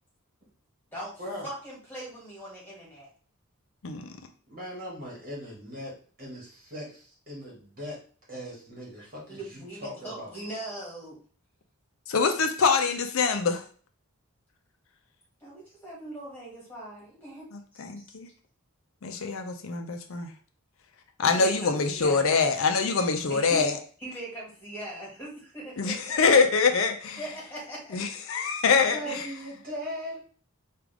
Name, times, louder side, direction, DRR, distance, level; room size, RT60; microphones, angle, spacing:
voice 1, 1.4-3.1 9.3-11.2 15.4-17.5 18.0-18.1 21.3-22.3 23.3-23.6 24.0-26.2 27.2-28.0 28.8-29.2, right 1 dB, 10° left, -5 dB, 1.9 m, -40 dB
voice 2, 4.5-10.3 28.9-30.2, equal, 40° right, -4 dB, 1.7 m, -39 dB
voice 3, 12.1-13.6 17.5-18.3 19.0-20.3 21.2-23.8 25.8-27.2 27.9-29.2, left 5 dB, 65° left, 6 dB, 0.5 m, -24 dB
4.8 x 2.5 x 3.4 m, 0.43 s
head